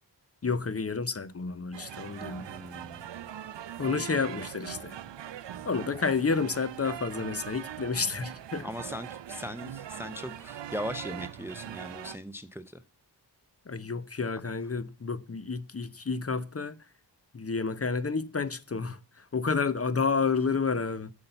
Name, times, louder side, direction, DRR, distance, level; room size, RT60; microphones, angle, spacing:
voice 1, 0.4-2.4 3.8-5.0 5.6-8.7 13.7-16.8 17.3-21.1, left 4 dB, 35° left, 0.7 m, -30 dB
sound 1, 1.7-12.2, right 11 dB, 90° right, 0.6 m, -41 dB
voice 2, 2.4-3.1 8.6-12.8, left 1 dB, 5° right, 0.5 m, -39 dB
8.2 x 5.7 x 7.8 m
wide cardioid pair, 110°, 42 cm